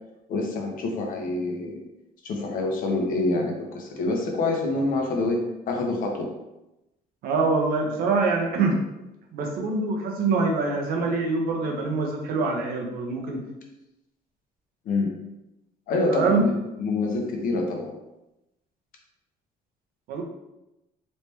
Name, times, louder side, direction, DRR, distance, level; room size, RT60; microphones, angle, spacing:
voice 1, 0.3-1.8 2.2-5.4 5.7-6.3 14.9-15.1 15.9-17.9, left 2 dB, 60° left, 1 dB, 0.8 m, -26 dB
voice 2, 7.2-8.8 9.3-13.4 16.1-16.4 20.1-20.2, right 4 dB, 75° right, 1 dB, 0.8 m, -24 dB
3.2 x 2.9 x 3.2 m, 0.94 s
cardioid pair, 140°, 16 cm